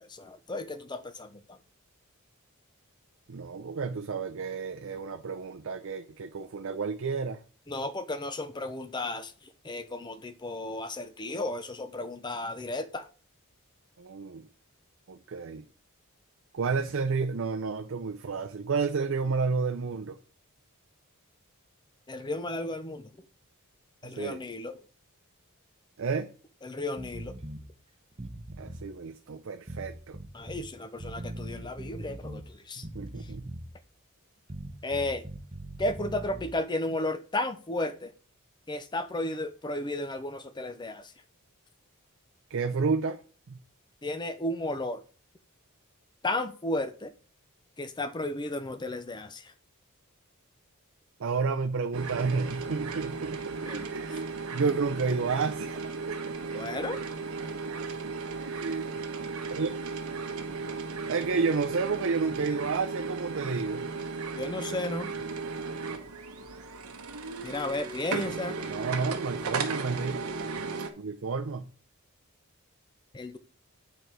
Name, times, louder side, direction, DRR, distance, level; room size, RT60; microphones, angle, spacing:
voice 1, 0.0-1.6 7.7-9.3 9.6-13.1 22.1-23.1 24.0-24.8 26.6-27.3 30.3-32.9 33.2-33.3 34.8-35.2 35.8-38.1 38.7-41.1 44.0-45.0 46.2-47.1 47.8-49.5 53.7-54.2 56.5-57.0 64.4-65.1 67.4-68.6 73.1-73.4, left 2 dB, 20° left, 0.5 m, -34 dB
voice 2, 3.3-7.4 14.0-14.5 15.1-15.6 16.5-20.2 24.0-24.4 26.0-26.3 28.6-30.2 32.8-33.5 42.5-43.2 43.5-43.6 51.2-56.2 58.3-58.9 59.5-59.7 61.1-63.9 68.6-70.2 71.0-71.7, right 4 dB, 60° right, 0.5 m, -31 dB
sound 1, 27.0-27.6 28.1-28.9 29.7-30.7 31.0-32.5 32.8-33.8 34.5-36.6, right 1 dB, 25° right, 0.8 m, -41 dB
sound 2, 51.9-70.9, right 4 dB, 85° right, 1.0 m, -35 dB
8.3 x 4.1 x 4.5 m
head